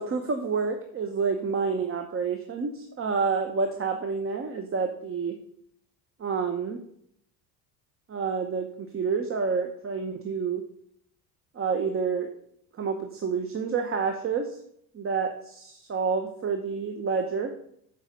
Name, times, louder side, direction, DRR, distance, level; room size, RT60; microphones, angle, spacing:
voice 1, 0.0-5.4 6.2-6.8 8.1-10.6 11.5-12.3 12.8-14.6 14.9-17.5, right 5 dB, 35° right, 5 dB, 1.0 m, -28 dB
7.3 x 5.3 x 6.7 m, 0.69 s
supercardioid pair, 100°, 39 cm